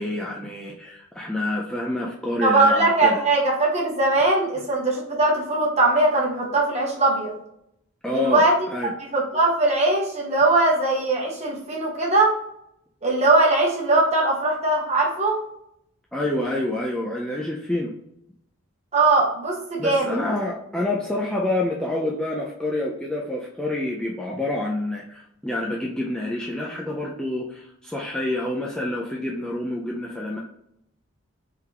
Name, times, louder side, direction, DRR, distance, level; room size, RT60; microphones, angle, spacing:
voice 1, 0.0-3.2 8.0-8.9 16.1-17.9 19.8-30.4, left 1 dB, 5° left, -3 dB, 0.4 m, -28 dB
voice 2, 2.4-7.3 8.1-8.5 8.8-12.3 13.0-15.4 18.9-20.2, right 2 dB, 30° right, -2 dB, 1.1 m, -20 dB
3.8 x 3.4 x 2.9 m, 0.78 s
head